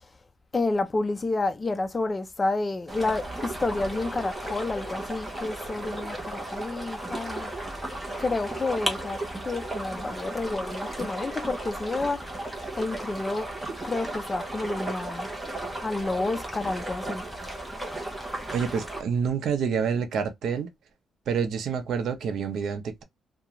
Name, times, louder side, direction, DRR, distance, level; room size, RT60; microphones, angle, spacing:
voice 1, 0.5-7.5 8.2-9.2 9.4-12.4 12.7-13.5 13.8-15.3 15.8-17.2, left 3 dB, 20° left, 0.4 m, -29 dB
sound 1, 2.9-19.0, right 1 dB, 5° right, 0.7 m, -35 dB
voice 2, 18.5-20.7 21.3-23.0, right 6 dB, 65° right, 0.6 m, -28 dB
2.5 x 2.2 x 2.9 m
cardioid pair, 145°, 0 cm